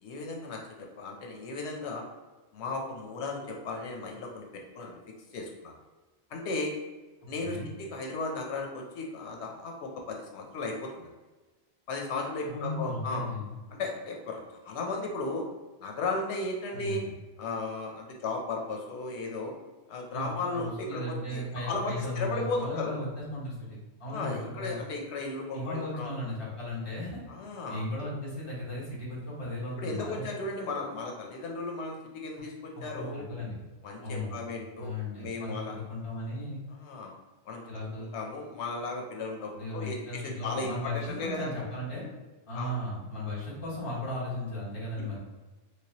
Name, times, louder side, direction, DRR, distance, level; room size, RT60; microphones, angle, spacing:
voice 1, 0.0-2.0 2.5-5.0 5.3-5.7 6.3-6.7 7.3-11.1 11.9-13.3 13.7-15.5 15.8-17.0 17.4-19.5 19.9-22.9 24.1-26.1 27.3-27.8 29.8-33.3 33.8-35.8 36.7-37.1 37.5-41.6 42.5-42.7 45.0-45.2, left 3 dB, 90° left, 1 dB, 0.9 m, -35 dB
voice 2, 12.5-13.5 16.7-17.1 20.1-24.8 25.5-27.2 27.7-30.3 32.9-33.6 34.0-34.4 34.8-36.6 37.7-38.1 39.5-42.1 42.5-45.2, left 1 dB, 30° left, -8 dB, 1.3 m, -36 dB
3.2 x 3.1 x 2.9 m, 1.2 s
omnidirectional pair, 1.1 m